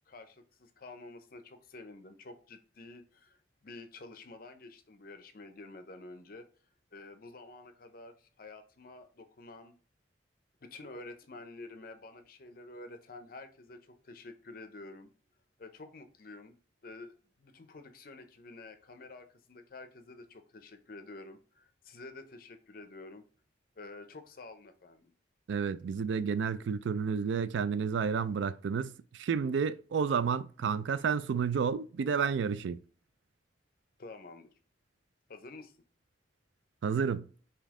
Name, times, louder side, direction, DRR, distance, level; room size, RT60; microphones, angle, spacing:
voice 1, 0.1-6.5 6.9-9.7 10.6-15.1 15.6-16.6 16.8-23.2 23.8-25.1 34.0-34.5 35.3-35.7, left 2 dB, 50° left, 0.6 m, -49 dB
voice 2, 25.5-32.8 36.8-37.3, right 6 dB, 70° right, 0.3 m, -31 dB
5.2 x 2.8 x 3.6 m
head